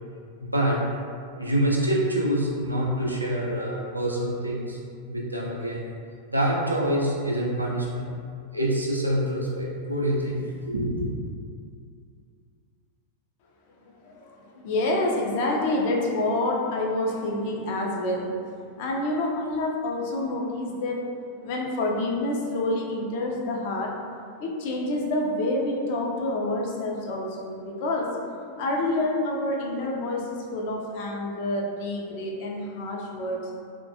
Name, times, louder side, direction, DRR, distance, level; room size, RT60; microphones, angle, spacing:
voice 1, 0.4-0.8 1.4-4.8 5.1-5.9 6.3-8.1 8.5-11.1, right 1 dB, 85° right, -3 dB, 0.3 m, -26 dB
voice 2, 14.0-18.4 18.8-21.0 21.4-23.9 24.4-28.1 28.4-33.5, left 2 dB, 50° left, -1 dB, 0.4 m, -28 dB
2.2 x 2.1 x 2.7 m, 2.3 s
figure-of-eight pair, 90°, 0 cm